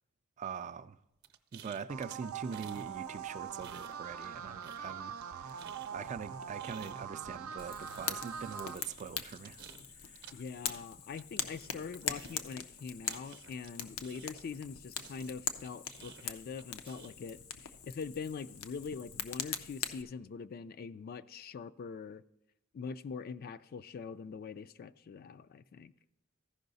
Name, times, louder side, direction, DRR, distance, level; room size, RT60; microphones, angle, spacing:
voice 1, 0.4-1.0 1.5-5.6 5.9-9.6, right 6 dB, 35° right, 0.3 m, -43 dB
sound 1, 1.2-2.9 3.2-4.3 4.6-14.6 14.9-17.3, right 8 dB, 50° right, 0.7 m, -55 dB
sound 2, 1.9-8.8, right 8 dB, 90° right, 0.5 m, -43 dB
Fire, 7.6-20.0, left 8 dB, 85° left, 0.6 m, -42 dB
voice 2, 10.3-22.2 22.7-25.9, left 5 dB, 45° left, 0.3 m, -43 dB
14.5 x 5.5 x 4.0 m
head